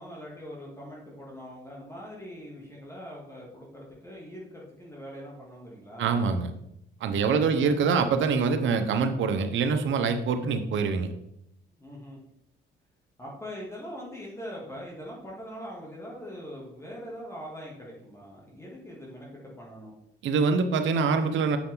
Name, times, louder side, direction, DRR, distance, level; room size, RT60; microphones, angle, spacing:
voice 1, 0.0-6.1 7.2-7.9 11.8-12.2 13.2-19.9, equal, 15° left, -4 dB, 2.9 m, -42 dB
voice 2, 6.0-6.5 7.0-11.1 20.2-21.6, right 5 dB, 75° right, 8 dB, 1.1 m, -25 dB
8.3 x 6.9 x 4.0 m, 0.79 s
cardioid pair, 90°, 20 cm